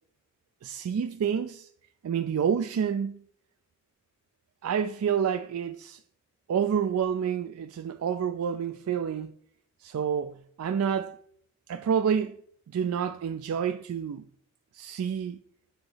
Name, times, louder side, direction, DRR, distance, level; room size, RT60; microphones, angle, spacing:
voice 1, 0.6-1.7 2.0-3.2 4.6-6.0 6.5-9.3 9.8-11.2 11.7-12.4 12.7-14.2 14.7-15.4, right 7 dB, 80° right, 0.3 m, -28 dB
8.0 x 3.0 x 5.5 m
head